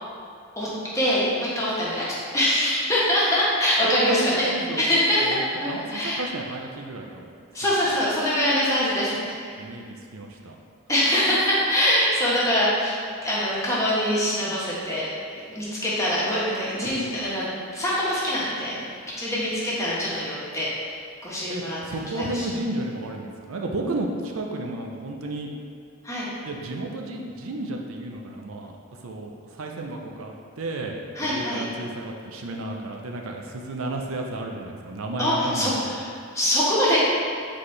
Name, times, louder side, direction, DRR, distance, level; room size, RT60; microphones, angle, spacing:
voice 1, 0.9-2.1 2.3-4.5 4.8-6.2 7.5-9.6 10.9-17.4 17.7-18.8 19.2-20.7 21.2-21.8 22.3-22.5 26.0-26.3 31.2-31.6 35.2-36.0 36.3-37.0, left 1 dB, 15° left, -8 dB, 1.4 m, -24 dB
voice 2, 3.8-7.3 9.6-10.6 21.5-25.5 26.5-28.7 29.0-36.0, right 2 dB, 70° right, 1 dB, 0.6 m, -32 dB
7.5 x 4.1 x 3.3 m, 2.3 s
head